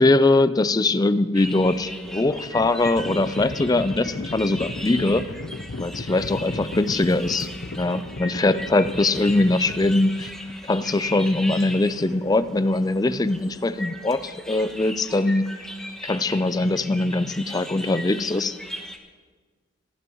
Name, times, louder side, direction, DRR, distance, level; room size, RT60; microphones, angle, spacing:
voice 1, 0.0-5.3 5.8-7.5 7.8-10.3 10.7-15.5 16.0-18.6, left 2 dB, 20° left, 13 dB, 0.4 m, -22 dB
sound 1, 1.3-19.0, left 1 dB, 5° left, 1.1 m, -38 dB
Livestock farm animals working animals, 1.8-10.7, left 2 dB, 70° left, 0.7 m, -36 dB
27.5 x 11.0 x 3.1 m, 1.5 s
head